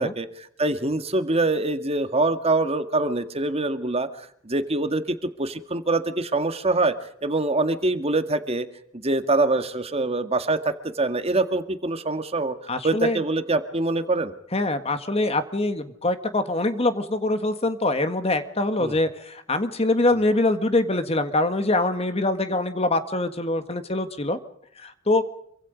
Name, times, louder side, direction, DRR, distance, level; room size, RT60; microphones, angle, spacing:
voice 1, 0.0-6.9 7.2-8.7 8.9-12.6 12.8-14.3 18.8-18.9, right 2 dB, 30° right, 9 dB, 1.9 m, -24 dB
voice 2, 12.7-13.2 14.5-24.4 24.8-25.2, left 2 dB, 30° left, 9 dB, 1.6 m, -24 dB
27.0 x 24.5 x 5.2 m, 0.69 s
head